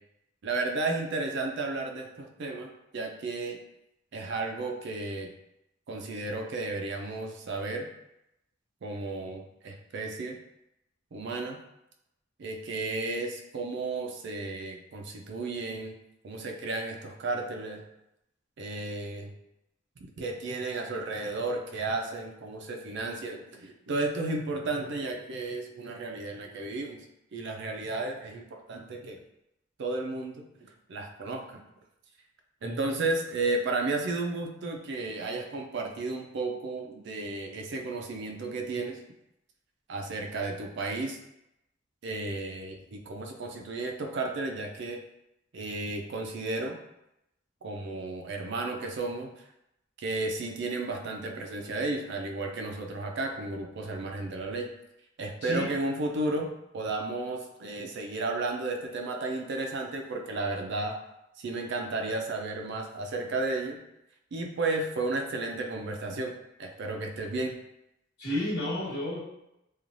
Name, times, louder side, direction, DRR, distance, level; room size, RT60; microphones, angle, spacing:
voice 1, 0.4-3.6 4.1-5.3 5.9-7.9 8.8-10.4 11.1-11.6 12.4-16.0 16.2-17.8 18.6-19.3 20.2-27.0 27.3-29.2 29.8-31.6 32.6-39.0 39.9-41.2 42.0-45.0 45.5-46.8 47.6-49.3 50.0-54.7 55.2-56.5 56.7-61.0 61.4-63.8 64.3-66.3 66.6-67.6, right 2 dB, 65° right, 2 dB, 0.4 m, -33 dB
voice 2, 68.2-69.2, left 1 dB, 55° left, -7 dB, 1.2 m, -31 dB
3.0 x 2.3 x 2.5 m, 0.85 s
head